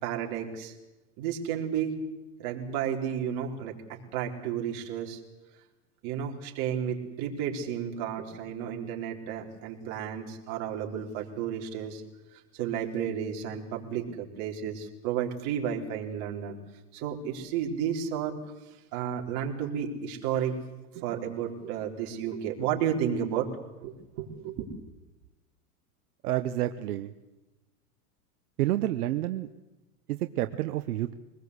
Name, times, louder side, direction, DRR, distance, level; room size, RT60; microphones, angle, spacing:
voice 1, 0.0-0.8 1.2-1.9 2.4-5.2 6.0-12.0 12.3-16.6 16.9-18.4 18.6-20.6 20.9-23.5 23.8-24.7, right 8 dB, 50° right, 1 dB, 4.1 m, -32 dB
voice 2, 26.2-27.1 28.6-29.5 30.1-31.1, right 14 dB, 85° right, 9 dB, 1.1 m, -29 dB
24.0 x 20.0 x 8.2 m, 1.0 s
supercardioid pair, 135°, 44 cm